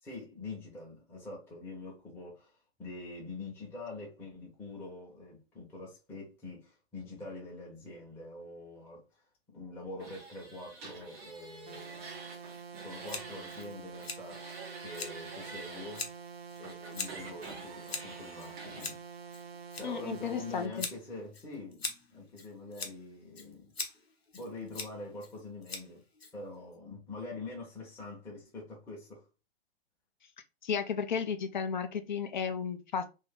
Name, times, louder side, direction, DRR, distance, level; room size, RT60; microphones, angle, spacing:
voice 1, 0.0-9.2 9.5-12.1 12.8-14.6 14.8-16.1 16.6-19.0 19.8-23.7 24.3-26.0 26.3-29.3, left 2 dB, 5° left, 0.8 m, -45 dB
sound 1, 10.0-13.7 13.9-16.0 16.6-18.9, right 3 dB, 10° right, 0.4 m, -47 dB
sound 2, 11.7-20.7, right 6 dB, 70° right, 0.6 m, -47 dB
Scissors, 13.1-26.8, left 4 dB, 70° left, 1.0 m, -44 dB
voice 2, 19.8-20.9 30.6-33.1, left 6 dB, 45° left, 0.5 m, -33 dB
2.6 x 2.5 x 3.5 m
figure-of-eight pair, 120°, 32 cm